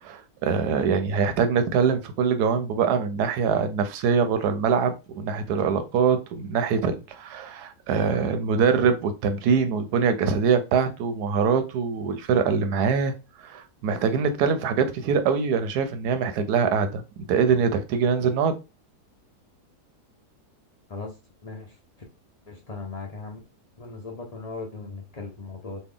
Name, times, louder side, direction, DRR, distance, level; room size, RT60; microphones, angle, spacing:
voice 1, 0.0-17.0 17.3-18.6, right 6 dB, 80° right, 1.2 m, -23 dB
voice 2, 22.5-23.4 23.8-25.8, left 3 dB, 50° left, 0.4 m, -37 dB
3.3 x 2.3 x 3.6 m
omnidirectional pair, 1.7 m